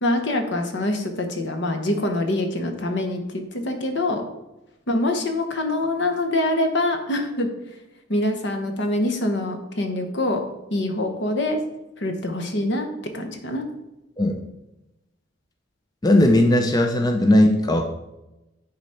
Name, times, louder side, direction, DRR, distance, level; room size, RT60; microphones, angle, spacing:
voice 1, 0.0-4.2 4.9-7.5 8.1-10.4 10.7-11.6 12.0-12.9 13.1-13.7, left 1 dB, 65° left, 6 dB, 1.0 m, -24 dB
voice 2, 16.0-17.9, left 1 dB, 20° left, 4 dB, 0.5 m, -17 dB
9.8 x 4.1 x 4.3 m, 0.96 s
head